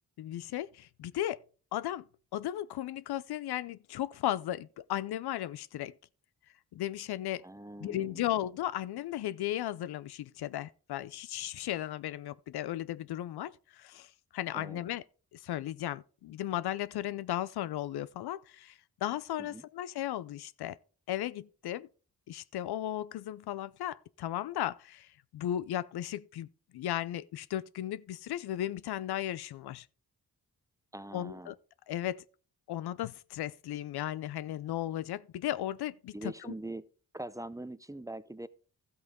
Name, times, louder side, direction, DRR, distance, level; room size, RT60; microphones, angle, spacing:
voice 1, 0.2-1.4 1.7-2.1 2.3-5.9 6.7-7.4 7.8-15.0 15.3-20.8 21.1-21.9 22.3-25.1 25.3-26.5 26.7-29.9 31.1-31.5 31.9-32.2 32.7-36.5, left 12 dB, 90° left, 0.5 m, -35 dB
voice 2, 7.4-8.4 14.5-14.8 19.4-19.6 30.9-31.6 36.1-36.9 37.1-38.5, right 1 dB, 10° right, 0.5 m, -43 dB
13.0 x 8.0 x 3.6 m
cardioid pair, 65°, 37 cm